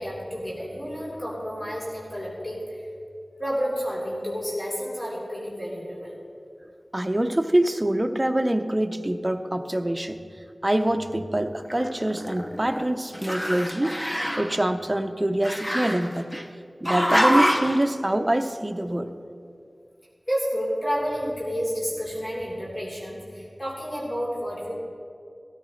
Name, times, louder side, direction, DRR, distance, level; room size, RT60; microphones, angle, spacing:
voice 1, 0.0-2.9 3.4-6.1 20.3-24.7, equal, 45° left, -6 dB, 3.7 m, -30 dB
voice 2, 6.9-10.2 10.6-14.0 14.4-16.4 16.8-19.1, right 1 dB, 25° right, 6 dB, 0.8 m, -25 dB
Growling, 11.6-12.9 13.1-14.6 15.4-16.4 16.9-17.8, equal, 10° left, 0.9 m, -25 dB
17.0 x 14.0 x 3.2 m, 2.4 s
wide cardioid pair, 60°, 0 cm